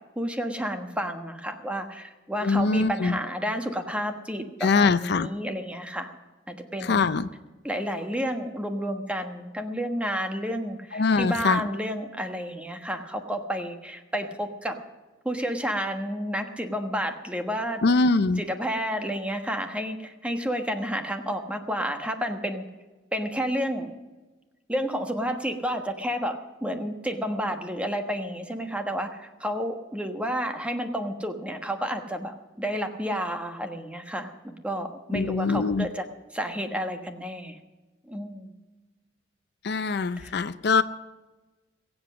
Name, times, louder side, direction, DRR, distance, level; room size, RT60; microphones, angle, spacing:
voice 1, 0.2-6.1 6.5-7.2 7.6-14.8 15.2-17.8 18.4-22.7 23.1-23.9 24.7-36.0 36.3-37.6 38.0-38.5 40.2-40.3, equal, 5° right, 5 dB, 1.3 m, -31 dB
voice 2, 2.4-3.2 4.6-5.3 6.8-7.3 10.9-11.6 17.8-18.4 35.1-35.9 39.6-40.8, left 4 dB, 60° left, 13 dB, 0.5 m, -23 dB
22.0 x 8.0 x 6.2 m, 1.2 s
head